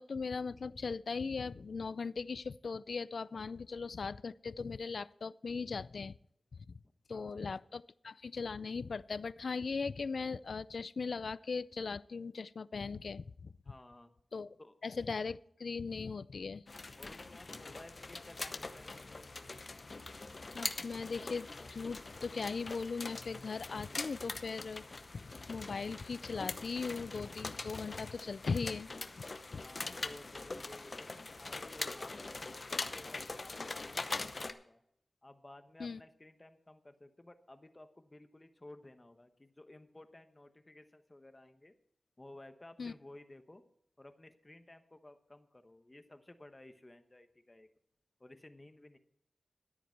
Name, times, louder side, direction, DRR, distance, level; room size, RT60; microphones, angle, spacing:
voice 1, 0.0-6.2 6.6-6.7 7.1-13.5 14.3-14.6 14.8-16.6 20.5-24.8 25.1-29.2 29.5-29.6 35.8-36.0 42.8-42.9, left 4 dB, 75° left, 19 dB, 0.4 m, -39 dB
voice 2, 7.1-7.8 13.6-14.1 14.6-14.7 17.0-19.4 29.6-34.8 35.2-41.7 42.2-43.6 44.0-47.7 48.2-49.0, left 1 dB, 25° left, 9 dB, 1.0 m, -56 dB
sound 1, 16.7-34.5, left 3 dB, 45° left, 0.8 m, -43 dB
13.5 x 10.0 x 4.6 m, 0.72 s
wide cardioid pair, 90°, 0 cm